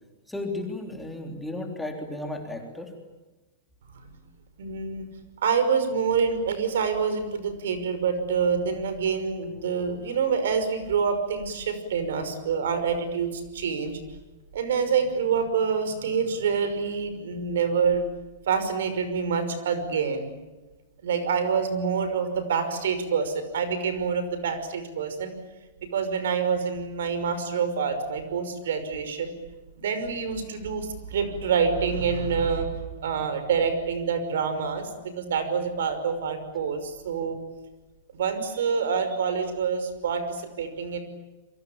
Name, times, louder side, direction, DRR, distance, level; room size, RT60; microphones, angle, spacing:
voice 1, 0.3-2.9, left 2 dB, 5° left, 2 dB, 3.4 m, -34 dB
voice 2, 4.6-5.0 5.4-14.0 14.5-18.0 18.5-20.3 21.0-25.3 25.9-29.3 29.8-32.7 33.0-37.4 38.1-41.0, right 6 dB, 80° right, 10 dB, 5.6 m, -26 dB
28.0 x 23.5 x 8.7 m, 1.1 s
supercardioid pair, 165°, 0 cm